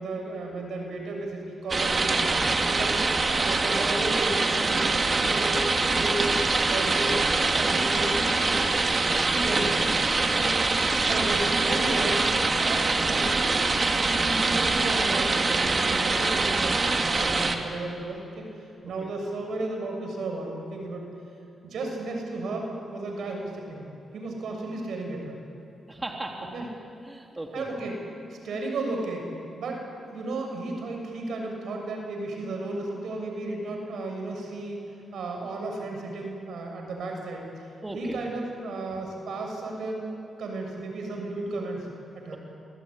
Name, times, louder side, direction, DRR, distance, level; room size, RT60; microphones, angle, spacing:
voice 1, 0.0-2.3 2.7-3.0 3.3-7.2 7.6-8.8 9.2-9.9 10.2-10.5 11.1-12.2 12.6-13.3 13.6-21.1 21.6-23.9 24.1-25.4 26.5-26.7 27.5-28.0 28.3-29.3 29.6-29.8 30.1-37.7 37.9-40.1 40.4-41.9 42.1-42.4, right 2 dB, 80° right, 2 dB, 6.9 m, -34 dB
sound 1, 1.7-17.5, right 3 dB, 40° right, 2.4 m, -24 dB
voice 2, 25.9-26.5 27.0-27.7 37.8-38.2 38.9-39.0, right 1 dB, 20° right, 0 dB, 3.3 m, -36 dB
26.5 x 20.0 x 10.0 m, 2.9 s
cardioid pair, 80°, 0 cm